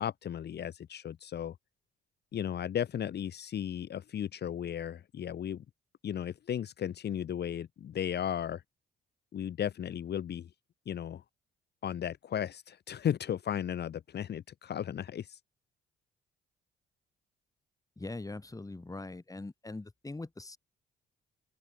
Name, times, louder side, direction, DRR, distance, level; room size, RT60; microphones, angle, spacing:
voice 1, 0.0-1.5 2.3-5.6 6.0-8.6 9.3-10.5 10.9-11.2 11.8-15.4, left 9 dB, 55° left, 1.4 m, -35 dB
voice 2, 18.0-20.6, left 2 dB, 15° left, 5.7 m, -42 dB
open air
cardioid pair, 90°, 20 cm